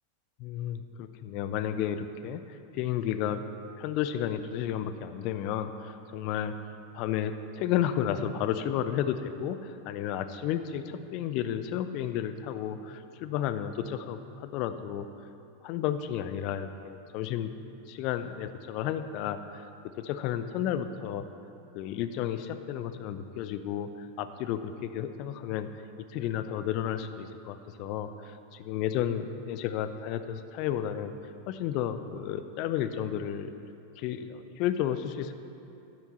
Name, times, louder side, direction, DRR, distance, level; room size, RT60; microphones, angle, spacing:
voice 1, 0.4-3.4 3.8-6.6 6.9-15.1 15.6-17.5 17.9-19.6 20.0-21.3 21.7-25.7 26.1-31.1 31.5-33.5 34.0-35.3, left 10 dB, 40° left, 10 dB, 0.5 m, -32 dB
12.0 x 9.6 x 4.1 m, 2.7 s
figure-of-eight pair, 90°, 0 cm